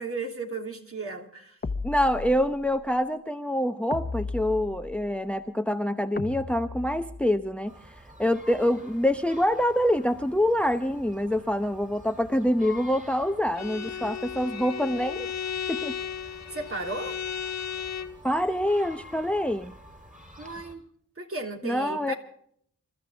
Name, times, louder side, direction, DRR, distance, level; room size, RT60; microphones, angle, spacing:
voice 1, 0.0-1.6 16.3-17.2 20.4-20.8 21.2-22.1, right 3 dB, 45° right, 3 dB, 3.0 m, -35 dB
sound 1, 1.6-2.7 3.9-5.2 6.2-7.4, left 4 dB, 30° left, 1.1 m, -35 dB
voice 2, 1.8-7.9 8.2-15.3 15.7-16.0 18.2-19.7 21.6-22.1, left 1 dB, 5° left, 9 dB, 0.8 m, -26 dB
sound 2, 7.6-20.8, left 1 dB, 25° right, 4.4 m, -49 dB
Bowed string instrument, 13.5-18.2, left 7 dB, 55° left, 1.6 m, -34 dB
27.5 x 13.5 x 3.6 m, 0.66 s
cardioid pair, 65°, 32 cm